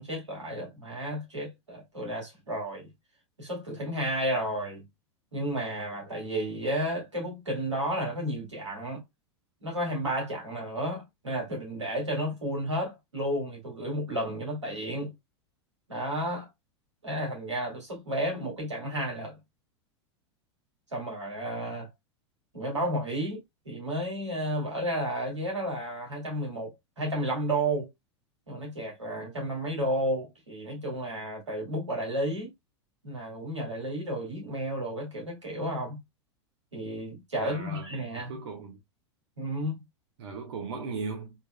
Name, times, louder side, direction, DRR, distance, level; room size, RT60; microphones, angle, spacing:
voice 1, 0.0-2.9 3.4-4.8 5.3-9.0 9.6-15.1 15.9-16.5 17.0-19.4 20.9-21.9 22.5-27.9 28.5-32.5 33.0-36.0 36.7-38.4 39.4-39.8, right 1 dB, 90° right, 2.2 m, -32 dB
voice 2, 37.4-37.9 38.1-38.8 40.2-41.3, right 4 dB, 65° right, 1.0 m, -37 dB
4.3 x 3.6 x 2.2 m
figure-of-eight pair, 90°, 15 cm